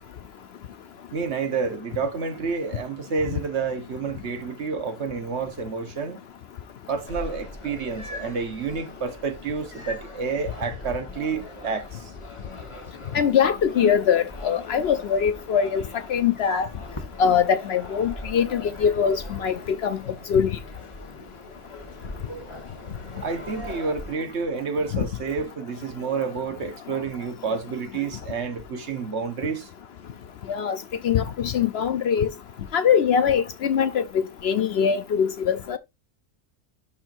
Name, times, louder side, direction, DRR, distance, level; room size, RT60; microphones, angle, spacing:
voice 1, 1.1-6.2 6.9-12.0 23.2-29.7, right 5 dB, 60° right, 1.4 m, -29 dB
sound 1, 7.1-24.2, left 1 dB, 25° left, 1.1 m, -41 dB
voice 2, 13.1-16.7 17.2-20.0 20.3-20.5 24.9-25.0 30.5-30.8 31.0-32.3 32.7-35.8, left 7 dB, 65° left, 0.7 m, -22 dB
11.5 x 4.5 x 2.6 m
omnidirectional pair, 1.3 m